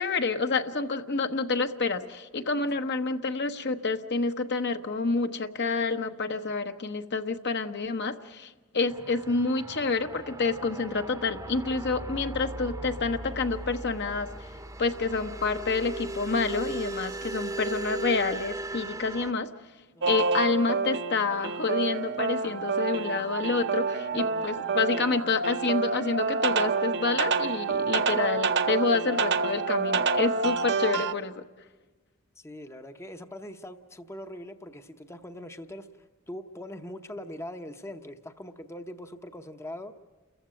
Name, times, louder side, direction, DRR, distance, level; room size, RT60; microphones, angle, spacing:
voice 1, 0.0-14.5 14.8-19.5 20.1-31.4, left 4 dB, 55° left, 7 dB, 1.1 m, -28 dB
sound 1, 8.9-19.3, right 2 dB, 15° right, 0.9 m, -38 dB
sound 2, 20.0-31.1, right 4 dB, 60° right, 0.9 m, -28 dB
voice 2, 24.1-24.8 32.4-40.0, left 1 dB, 15° left, 8 dB, 0.8 m, -42 dB
29.5 x 15.0 x 9.0 m, 1.2 s
head